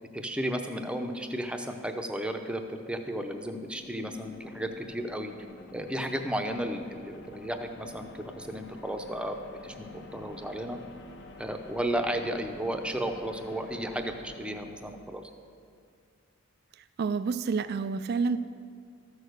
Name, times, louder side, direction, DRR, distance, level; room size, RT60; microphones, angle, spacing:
voice 1, 0.1-5.3 5.7-9.4 9.6-9.9 10.1-10.8 11.4-15.2, right 1 dB, 5° right, 5 dB, 0.6 m, -33 dB
sound 1, 2.4-15.5, left 2 dB, 55° left, 1.0 m, -49 dB
voice 2, 17.0-18.4, right 4 dB, 45° right, 11 dB, 0.3 m, -28 dB
13.5 x 6.5 x 6.5 m, 2.3 s
head